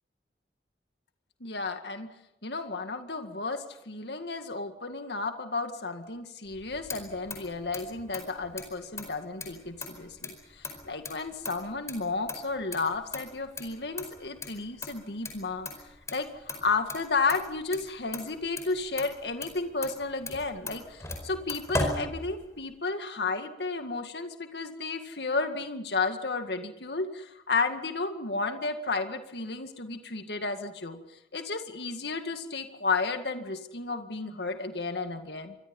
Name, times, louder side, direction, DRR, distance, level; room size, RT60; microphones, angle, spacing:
voice 1, 1.4-2.1 2.4-15.7 16.1-31.0 31.3-35.6, left 3 dB, 75° left, 7 dB, 2.1 m, -32 dB
Motor vehicle (road), 6.5-22.7, left 2 dB, 15° left, 4.8 m, -39 dB
28.5 x 24.0 x 5.5 m, 0.81 s
head